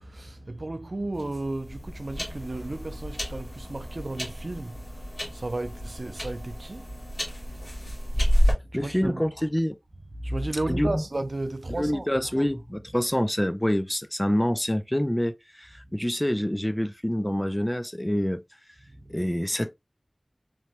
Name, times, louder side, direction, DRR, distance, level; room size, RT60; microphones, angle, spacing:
voice 1, 0.0-9.3 10.1-12.5 18.9-19.3, right 2 dB, 75° right, 0.4 m, -34 dB
sound 1, 1.1-8.5, equal, 60° left, 1.6 m, -29 dB
voice 2, 8.7-9.8 10.7-11.0 11.8-18.4 19.1-19.7, equal, 15° left, 0.3 m, -26 dB
3.0 x 2.2 x 2.7 m
wide cardioid pair, 45°, 0 cm